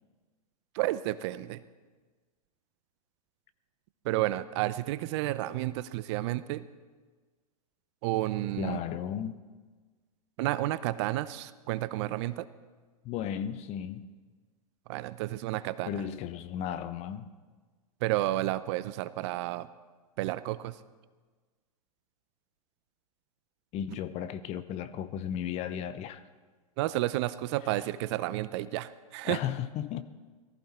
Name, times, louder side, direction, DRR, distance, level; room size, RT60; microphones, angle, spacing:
voice 1, 0.7-1.6 4.0-6.7 8.0-8.8 10.4-12.5 14.9-16.0 18.0-19.7 20.2-20.8 26.8-29.4, right 16 dB, 45° right, 15 dB, 0.7 m, -31 dB
voice 2, 8.6-9.4 13.0-14.1 15.8-17.3 23.7-26.2 29.2-30.0, left 9 dB, 35° left, 13 dB, 0.9 m, -35 dB
18.5 x 14.5 x 4.4 m, 1.4 s
hypercardioid pair, 110°, 19 cm